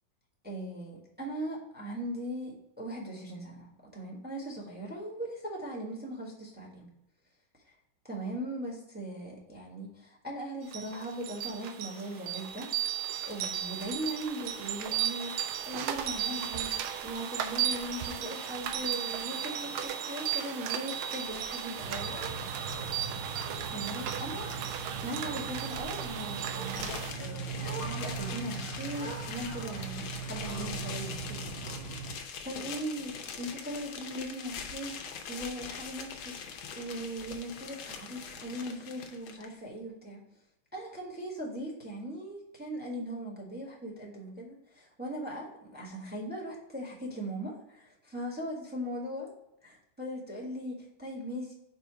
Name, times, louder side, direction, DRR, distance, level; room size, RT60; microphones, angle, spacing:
voice 1, 0.4-3.7 3.9-6.9 8.0-12.7 13.2-22.2 23.7-24.6 25.0-31.5 31.9-36.4 36.7-40.2 40.7-49.3 49.6-51.5, right 1 dB, 5° right, -2 dB, 1.3 m, -39 dB
sound 1, 10.7-27.1, right 9 dB, 75° right, 1.4 m, -35 dB
sound 2, 21.8-32.1, right 5 dB, 40° right, 0.8 m, -39 dB
sound 3, 26.7-39.4, left 6 dB, 75° left, 1.6 m, -42 dB
4.9 x 4.8 x 4.8 m, 0.83 s
omnidirectional pair, 2.4 m